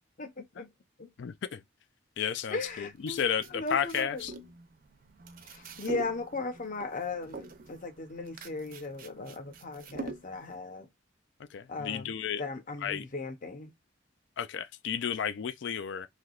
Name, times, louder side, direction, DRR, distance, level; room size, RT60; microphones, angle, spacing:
voice 1, 0.2-0.7 1.0-1.1 2.5-4.2 5.4-10.9 11.7-12.1 12.4-13.7, left 3 dB, 45° left, 0.7 m, -37 dB
voice 2, 1.2-1.6 2.2-4.3 11.5-12.4 12.8-13.0 14.4-16.1, left 8 dB, 70° left, 0.4 m, -32 dB
sound 1, 2.6-10.6, right 2 dB, 50° right, 0.5 m, -45 dB
3.3 x 2.8 x 2.4 m
head